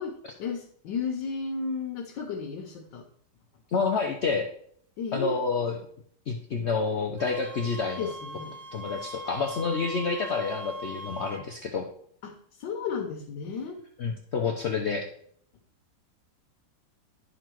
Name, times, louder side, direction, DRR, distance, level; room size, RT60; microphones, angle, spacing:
voice 1, 0.0-3.1 5.0-5.3 8.0-8.6 12.2-13.8, left 5 dB, 90° left, 3 dB, 1.6 m, -34 dB
voice 2, 3.7-4.5 5.1-5.7 6.3-8.1 8.7-11.9 14.0-15.1, left 4 dB, 65° left, 3 dB, 0.6 m, -28 dB
Wind instrument woodwind instrument, 7.2-11.5, equal, 60° right, 0.5 m, -41 dB
11.0 x 3.9 x 4.5 m, 0.63 s
omnidirectional pair, 1.9 m